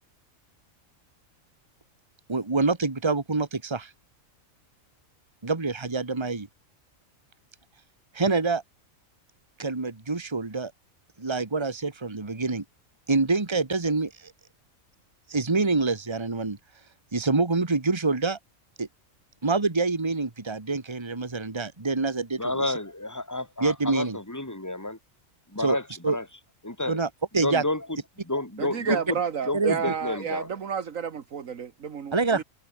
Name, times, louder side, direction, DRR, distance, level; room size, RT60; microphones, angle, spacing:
voice 1, 2.3-3.9 5.4-6.5 8.1-8.6 9.6-10.7 11.2-12.6 13.1-14.3 15.3-16.6 17.1-18.4 18.8-18.9 19.4-22.7 23.6-24.2 25.6-25.8 26.0-26.2 26.9-27.6 29.5-29.9 32.1-32.4, right 3 dB, 20° right, 1.7 m, -26 dB
voice 2, 22.4-25.0 25.5-26.2 26.6-27.0 27.4-28.0 28.2-29.2 29.5-30.5, left 2 dB, 10° left, 3.5 m, -30 dB
voice 3, 28.6-32.4, right 7 dB, 75° right, 1.8 m, -31 dB
omnidirectional pair, 1.4 m